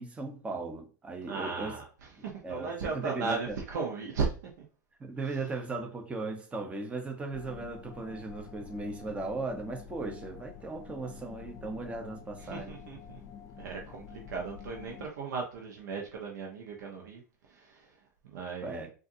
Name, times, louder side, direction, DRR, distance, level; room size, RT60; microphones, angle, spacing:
voice 1, 0.0-1.8 2.4-3.6 5.0-12.8 18.6-18.9, right 3 dB, 15° right, 0.7 m, -37 dB
voice 2, 1.3-4.3 4.6-4.7 5.2-5.4 12.4-13.2 13.6-18.9, right 5 dB, 80° right, 0.8 m, -36 dB
sound 1, 7.3-15.1, left 7 dB, 35° left, 0.4 m, -48 dB
3.8 x 2.5 x 2.6 m
supercardioid pair, 130°, 10 cm